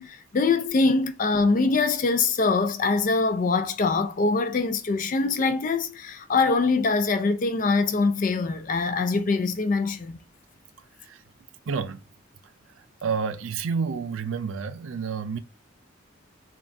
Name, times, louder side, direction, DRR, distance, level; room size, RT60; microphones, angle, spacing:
voice 1, 0.0-10.2, left 3 dB, 40° left, 0.4 m, -23 dB
voice 2, 11.7-12.0 13.0-15.4, right 5 dB, 85° right, 0.4 m, -29 dB
3.9 x 2.3 x 3.4 m
head